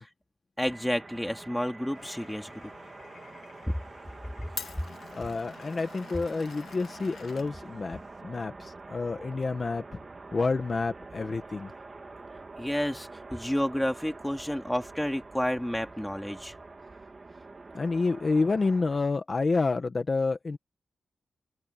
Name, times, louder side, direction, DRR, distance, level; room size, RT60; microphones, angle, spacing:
voice 1, 0.6-2.7 4.4-4.5 12.6-16.5, equal, 5° left, 2.7 m, -30 dB
sound 1, 0.6-19.0, right 3 dB, 30° right, 1.9 m, -46 dB
Glass, 1.9-8.2, left 6 dB, 70° left, 1.7 m, -47 dB
voice 2, 5.2-9.8 10.3-11.7 17.7-20.6, left 3 dB, 35° left, 1.8 m, -29 dB
wide cardioid pair, 140°, 0 cm